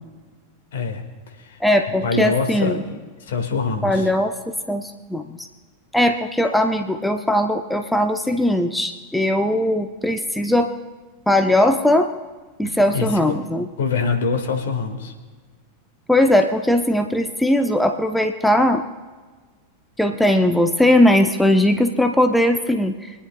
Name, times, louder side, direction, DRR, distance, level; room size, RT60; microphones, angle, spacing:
voice 1, 0.7-1.0 1.3-4.1 12.6-13.3 13.8-15.1, left 4 dB, 60° left, 4 dB, 1.7 m, -25 dB
voice 2, 1.6-2.8 3.8-4.3 4.7-5.2 5.9-10.7 11.3-12.1 12.6-13.7 16.1-18.8 20.0-23.1, left 1 dB, 5° left, 6 dB, 0.7 m, -19 dB
27.5 x 10.0 x 2.2 m, 1.3 s
figure-of-eight pair, 90°, 0 cm